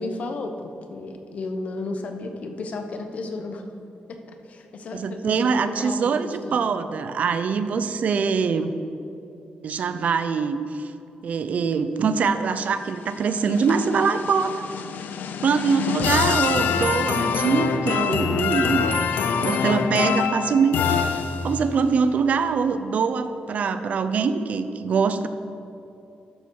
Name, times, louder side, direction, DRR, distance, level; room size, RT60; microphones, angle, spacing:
voice 1, 0.0-3.7 4.1-6.6, left 2 dB, 50° left, 6 dB, 0.9 m, -33 dB
voice 2, 4.9-8.7 9.6-10.9 11.2-14.7 15.4-18.9 19.4-25.3, right 5 dB, 50° right, 10 dB, 0.5 m, -23 dB
sound 1, 12.8-21.8, left 6 dB, 80° left, 0.5 m, -25 dB
12.5 x 7.2 x 4.7 m, 2.8 s
wide cardioid pair, 175°, 3 cm